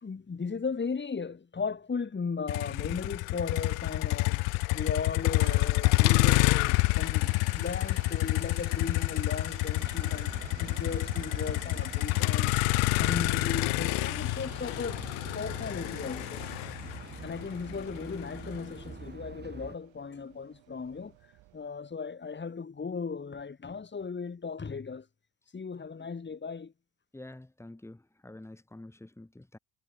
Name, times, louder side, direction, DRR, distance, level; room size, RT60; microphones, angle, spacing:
voice 1, 0.0-16.4 17.2-21.1 21.5-25.1 25.5-26.7, left 5 dB, 25° left, 2.1 m, -37 dB
Motor vehicle (road), 2.5-18.6, left 27 dB, 85° left, 1.2 m, -28 dB
sound 1, 5.1-21.8, right 17 dB, 70° right, 4.1 m, -51 dB
sound 2, 9.8-19.8, right 4 dB, 20° right, 2.2 m, -45 dB
voice 2, 27.1-29.6, left 1 dB, 5° left, 1.5 m, -48 dB
supercardioid pair, 90°, 48 cm